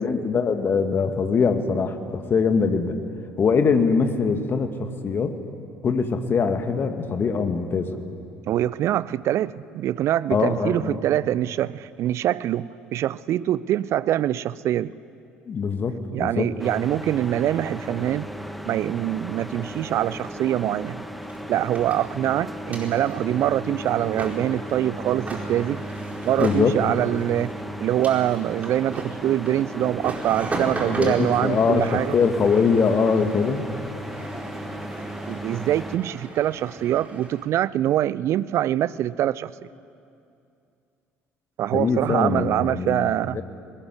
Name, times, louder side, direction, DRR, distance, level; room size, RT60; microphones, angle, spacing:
voice 1, 0.0-3.0 3.4-5.4 5.8-8.0 10.3-11.0 15.5-16.5 26.4-26.8 30.9-31.9 32.1-33.7 41.7-43.4, left 5 dB, 40° left, 7 dB, 2.0 m, -22 dB
voice 2, 8.5-14.9 16.1-18.3 18.6-21.0 21.5-25.8 26.2-27.5 27.8-32.2 34.6-34.8 35.3-39.5 41.6-43.4, right 12 dB, 50° right, 20 dB, 0.5 m, -24 dB
sound 1, 16.6-36.0, equal, ahead, 1.6 m, -36 dB
sound 2, 21.2-37.4, right 2 dB, 25° right, 4.9 m, -37 dB
20.0 x 19.5 x 9.8 m, 2.6 s
figure-of-eight pair, 55°, 6 cm